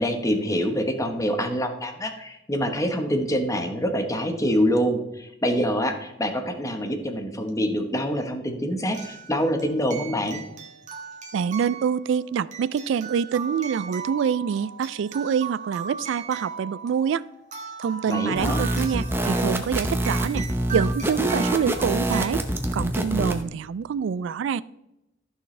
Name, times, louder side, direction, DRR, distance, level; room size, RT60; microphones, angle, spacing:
voice 1, 0.0-10.4 18.1-18.6, equal, 15° left, 5 dB, 1.1 m, -25 dB
sound 1, 7.5-7.6 8.9-22.3, right 6 dB, 40° right, 1.5 m, -38 dB
voice 2, 11.3-17.2 17.8-20.5 20.7-22.4 22.7-24.6, right 7 dB, 70° right, 17 dB, 0.3 m, -26 dB
sound 2, 18.4-23.4, right 1 dB, 10° right, 0.8 m, -26 dB
14.5 x 6.4 x 3.2 m, 0.91 s
head